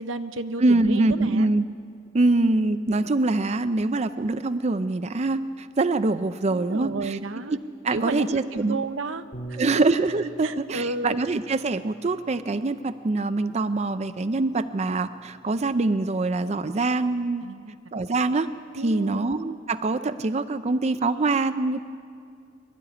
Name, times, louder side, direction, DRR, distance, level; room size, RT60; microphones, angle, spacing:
voice 1, 0.0-1.5 6.5-7.6 7.9-9.6 10.4-11.2 17.4-17.8 18.7-19.2, right 3 dB, 85° right, 9 dB, 0.9 m, -32 dB
voice 2, 0.6-1.7 2.1-7.2 7.5-7.6 7.8-8.8 9.6-17.4 17.9-18.5 18.8-21.8, right 2 dB, 35° right, 10 dB, 0.5 m, -24 dB
Bass guitar, 9.3-15.6, right 2 dB, 40° left, 2.4 m, -46 dB
23.0 x 12.5 x 9.8 m, 2.2 s
head